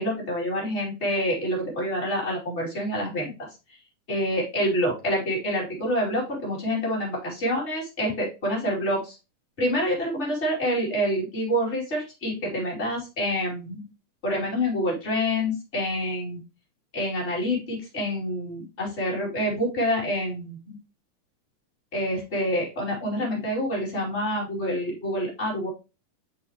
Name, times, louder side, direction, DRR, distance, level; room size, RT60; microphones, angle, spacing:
voice 1, 0.0-3.5 4.1-9.2 9.6-13.8 14.2-16.4 16.9-20.8 21.9-25.7, equal, 20° left, -3 dB, 2.9 m, -27 dB
6.3 x 6.1 x 3.0 m, 0.28 s
omnidirectional pair, 3.7 m